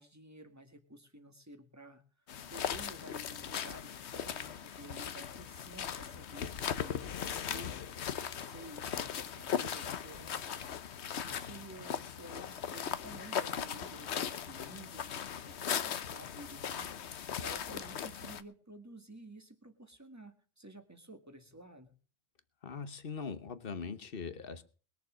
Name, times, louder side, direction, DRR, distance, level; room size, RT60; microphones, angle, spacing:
voice 1, 0.0-2.0 2.5-7.8 8.2-10.8 11.2-16.9 17.4-21.9, right 1 dB, 15° right, 1.9 m, -52 dB
sound 1, 2.3-18.4, left 8 dB, 85° left, 1.1 m, -38 dB
voice 2, 22.6-24.6, left 5 dB, 60° left, 1.3 m, -41 dB
21.0 x 7.1 x 6.3 m
omnidirectional pair, 1.1 m